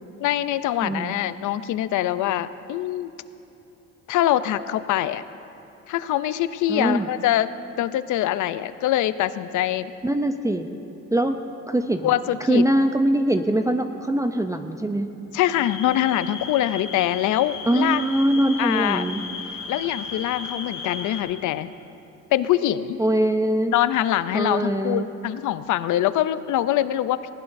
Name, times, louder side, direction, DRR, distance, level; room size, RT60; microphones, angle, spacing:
voice 1, 0.2-3.1 4.1-5.2 5.9-7.5 7.8-9.9 12.0-12.6 15.3-18.0 18.6-19.1 19.7-21.7 22.3-23.0 23.7-27.3, left 13 dB, 75° left, 14 dB, 0.5 m, -24 dB
voice 2, 0.8-1.1 6.7-7.1 10.0-10.7 11.1-11.4 11.7-12.1 12.5-15.1 17.7-19.2 23.0-23.7 24.3-25.1, right 1 dB, 10° right, 7 dB, 0.5 m, -22 dB
sound 1, 15.5-21.2, left 5 dB, 60° left, 2.5 m, -35 dB
19.5 x 15.5 x 2.6 m, 2.9 s
cardioid pair, 90°, 30 cm